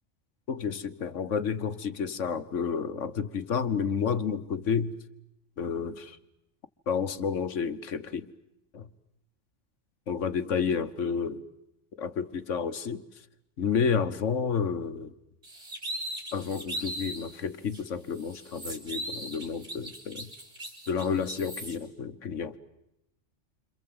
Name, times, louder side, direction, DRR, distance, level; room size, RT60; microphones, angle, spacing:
voice 1, 0.5-5.0 5.6-6.2 6.9-8.3 8.7-8.9 10.1-11.4 12.0-13.0 13.6-15.1 16.3-20.3 20.9-22.6, left 6 dB, 75° left, 1.5 m, -30 dB
sound 1, 15.4-17.3 17.7-17.8 18.2-21.7, right 1 dB, 70° right, 5.6 m, -38 dB
28.5 x 26.5 x 7.8 m
omnidirectional pair, 1.3 m